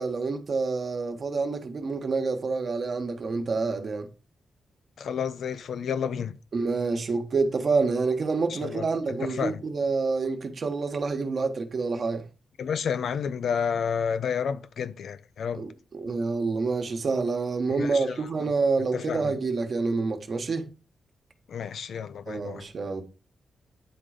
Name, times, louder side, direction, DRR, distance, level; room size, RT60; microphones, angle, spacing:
voice 1, 0.0-4.1 6.5-12.2 15.5-20.6 22.3-23.0, right 4 dB, 45° right, 1.3 m, -27 dB
voice 2, 5.0-6.3 8.5-8.9 9.2-9.6 12.6-15.6 17.7-18.2 18.9-19.3 21.5-22.6, left 7 dB, 70° left, 0.6 m, -30 dB
9.9 x 3.8 x 5.0 m
wide cardioid pair, 145°, 0 cm